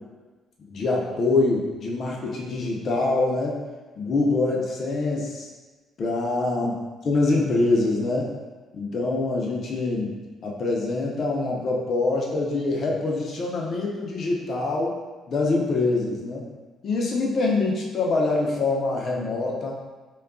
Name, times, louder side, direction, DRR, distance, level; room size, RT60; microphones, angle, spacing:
voice 1, 0.7-3.6 4.0-5.5 6.0-6.8 7.0-8.3 8.7-10.1 10.4-15.0 15.3-16.4 16.8-19.7, left 3 dB, 50° left, -2 dB, 0.6 m, -24 dB
2.3 x 2.2 x 3.6 m, 1.3 s
cardioid pair, 120°, 0 cm